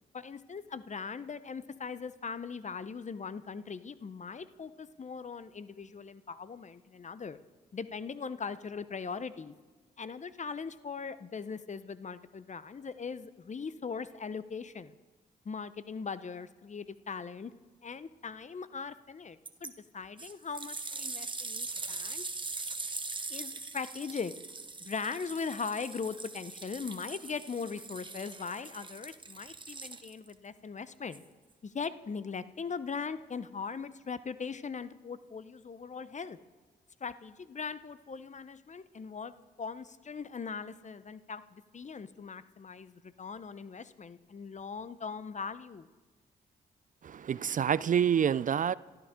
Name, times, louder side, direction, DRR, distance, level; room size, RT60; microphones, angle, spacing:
voice 1, 0.1-7.4 7.7-9.5 10.0-14.9 15.4-17.5 17.8-22.2 23.3-24.3 24.8-31.2 31.6-36.4 37.0-45.9, left 5 dB, 40° left, 0.8 m, -40 dB
sound 1, 19.5-19.7 20.2-30.3 31.1-31.2, right 3 dB, 25° right, 1.2 m, -41 dB
voice 2, 47.0-48.8, right 8 dB, 45° right, 0.4 m, -27 dB
25.5 x 12.5 x 3.7 m
supercardioid pair, 45°, 18 cm